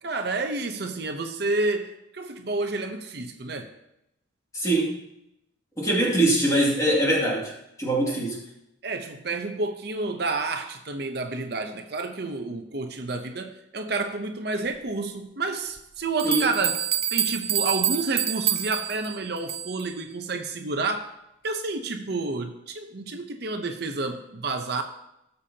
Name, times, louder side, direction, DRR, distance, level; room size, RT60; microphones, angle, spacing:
voice 1, 0.0-3.7 6.0-6.2 8.1-8.2 8.8-16.8 17.1-21.1 21.4-24.8, right 3 dB, 55° right, 5 dB, 0.7 m, -30 dB
voice 2, 4.5-5.0 5.8-7.5 7.8-8.4 16.2-16.5, right 1 dB, 15° left, -3 dB, 2.2 m, -23 dB
sound 1, 15.8-15.9 16.2-19.9, right 11 dB, 30° right, 0.4 m, -27 dB
17.5 x 6.8 x 2.8 m, 0.84 s
head